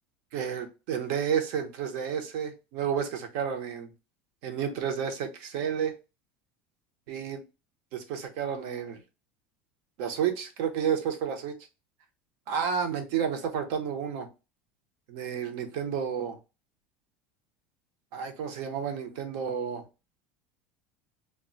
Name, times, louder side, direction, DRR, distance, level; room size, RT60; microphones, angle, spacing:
voice 1, 0.3-3.9 4.4-5.9 7.1-7.4 7.9-9.0 10.0-11.5 12.5-14.3 15.1-16.4 18.1-19.8, right 7 dB, 65° right, 0.7 m, -31 dB
2.2 x 2.0 x 3.8 m
supercardioid pair, 145°, 5 cm